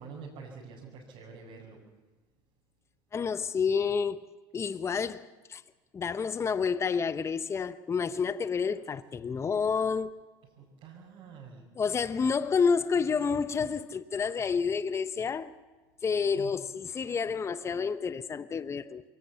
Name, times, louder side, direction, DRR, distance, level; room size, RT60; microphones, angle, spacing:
voice 1, 0.0-1.8 8.6-8.8 10.6-11.7 16.3-16.8, right 5 dB, 65° right, 5.3 m, -47 dB
voice 2, 3.1-4.3 4.5-5.6 5.9-10.2 11.8-15.6 16.0-19.0, left 5 dB, 30° left, 0.8 m, -29 dB
22.5 x 18.0 x 7.1 m
supercardioid pair, 85°, 10 cm